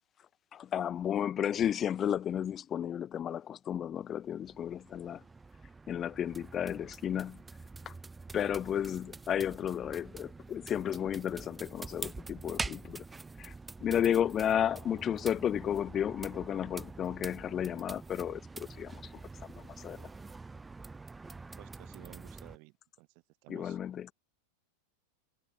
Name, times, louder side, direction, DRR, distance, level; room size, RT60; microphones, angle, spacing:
voice 1, 0.5-5.2 5.9-7.4 7.9-8.0 8.3-13.0 13.4-13.5 13.8-20.1 23.5-24.1, left 9 dB, 25° left, 0.4 m, -33 dB
sound 1, 4.1-22.6, right 3 dB, 10° right, 1.3 m, -46 dB
voice 2, 21.6-23.1 23.4-23.8, right 40 dB or more, 45° right, 1.3 m, -54 dB
sound 2, 21.7-22.8, left 23 dB, 50° left, 7.4 m, -75 dB
figure-of-eight pair, 90°, 0 cm